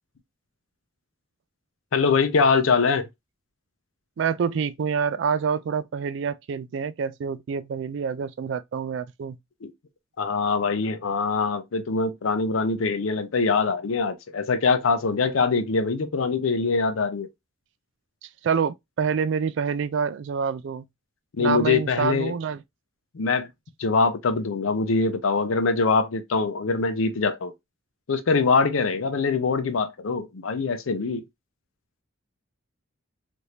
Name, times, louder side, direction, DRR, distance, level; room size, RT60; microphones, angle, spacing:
voice 1, 1.9-3.1 9.6-9.7 10.2-17.3 21.3-22.3 23.1-23.5 23.8-27.5 28.1-31.2, left 4 dB, 85° left, 0.5 m, -23 dB
voice 2, 4.2-9.4 18.2-20.8 21.4-22.6, right 6 dB, 60° right, 0.3 m, -27 dB
3.2 x 2.6 x 2.7 m
head